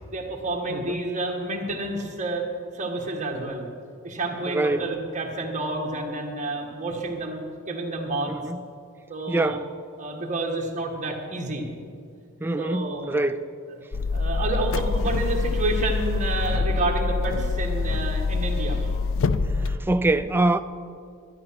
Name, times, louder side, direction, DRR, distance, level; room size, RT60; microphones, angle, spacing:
voice 1, 0.1-2.4 2.7-3.7 4.0-8.3 9.1-9.6 10.0-11.7 12.6-13.2 14.1-18.9, right 2 dB, 35° right, 1.6 m, -29 dB
voice 2, 0.7-1.0 4.5-4.9 8.3-8.6 9.3-9.7 12.4-13.5 19.6-20.6, right 2 dB, 10° right, 0.3 m, -25 dB
sound 1, 13.9-19.8, left 4 dB, 65° left, 0.5 m, -25 dB
12.5 x 9.7 x 5.8 m
head